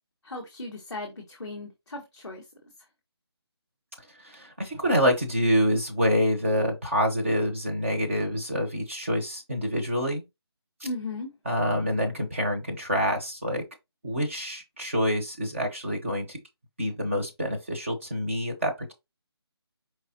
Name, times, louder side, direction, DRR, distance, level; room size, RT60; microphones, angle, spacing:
voice 1, 0.2-2.4 10.8-11.3, left 2 dB, ahead, 0.5 m, -36 dB
voice 2, 4.2-10.2 11.4-13.6 14.0-16.4 16.8-18.9, equal, 30° right, 1.1 m, -26 dB
4.7 x 3.5 x 2.8 m
figure-of-eight pair, 180°, 14 cm